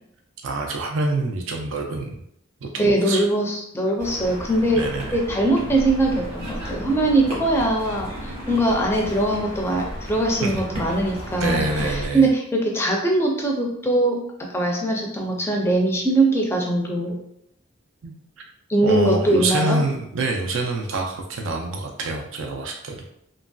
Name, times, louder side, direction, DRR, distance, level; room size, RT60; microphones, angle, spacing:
voice 1, 0.4-2.2 2.6-3.2 4.7-5.2 10.4-10.6 11.3-12.3 18.0-18.1 18.8-23.0, right 2 dB, 75° right, 2 dB, 0.4 m, -26 dB
voice 2, 2.8-4.9 5.1-17.2 18.7-19.8, right 1 dB, 10° left, -1 dB, 0.4 m, -21 dB
sound 1, 4.0-12.1, equal, 35° right, 1.1 m, -33 dB
2.9 x 2.6 x 2.2 m, 0.75 s
head